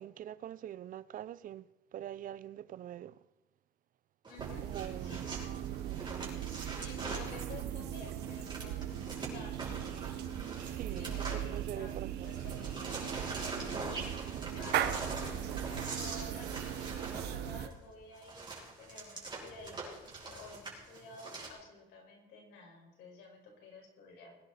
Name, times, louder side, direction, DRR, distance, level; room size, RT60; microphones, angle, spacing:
voice 1, 0.0-3.2 4.6-6.5 10.7-12.8 15.1-15.2, right 11 dB, 55° right, 0.6 m, -45 dB
sound 1, 4.2-12.0 12.2-21.5, right 3 dB, 25° right, 5.6 m, -43 dB
voice 2, 4.3-4.7 5.0-5.3 6.8-10.1 11.0-14.1 14.5-24.4, left 3 dB, 80° left, 5.4 m, -52 dB
sound 2, 4.4-17.7, right 11 dB, 85° right, 1.2 m, -38 dB
21.0 x 11.0 x 4.2 m
cardioid pair, 110°, 17 cm